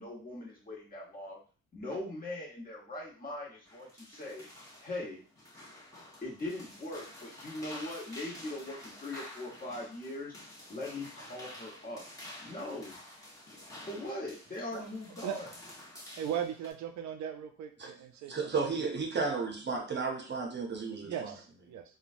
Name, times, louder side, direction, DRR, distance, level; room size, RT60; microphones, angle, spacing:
voice 1, 0.0-1.4 1.7-4.5 4.8-5.2 6.2-10.3 10.7-12.0 12.4-13.0 13.8-15.5, left 1 dB, 30° left, -3 dB, 1.2 m, -40 dB
sound 1, 3.7-16.7, left 1 dB, 10° left, 1.0 m, -50 dB
voice 2, 16.2-18.4 19.9-20.0 21.0-21.8, right 9 dB, 70° right, 6 dB, 0.4 m, -38 dB
voice 3, 18.3-21.3, right 4 dB, 35° right, 2 dB, 0.7 m, -33 dB
3.1 x 2.1 x 2.5 m, 0.38 s
cardioid pair, 90°, 30 cm